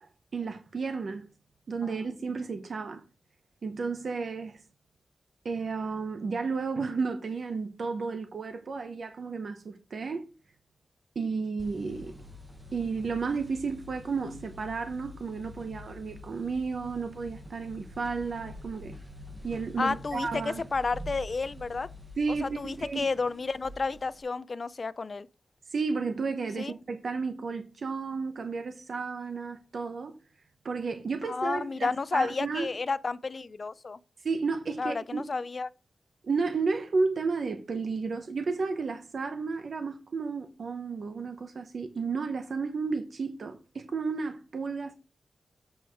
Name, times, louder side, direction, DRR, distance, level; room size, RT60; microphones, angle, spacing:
voice 1, 0.0-1.3 1.7-3.0 3.6-4.6 5.4-10.3 11.2-12.2 12.7-18.9 19.4-20.6 22.2-23.1 25.7-30.1 30.6-32.7 34.2-35.2 36.2-44.9, right 4 dB, 65° right, 0.8 m, -32 dB
sound 1, 11.6-24.2, left 1 dB, 10° right, 0.9 m, -46 dB
voice 2, 19.8-21.9 22.3-25.3 26.6-26.7 31.3-34.0 34.8-35.7, left 4 dB, 45° left, 0.4 m, -31 dB
7.9 x 4.7 x 4.6 m
wide cardioid pair, 160°, 0 cm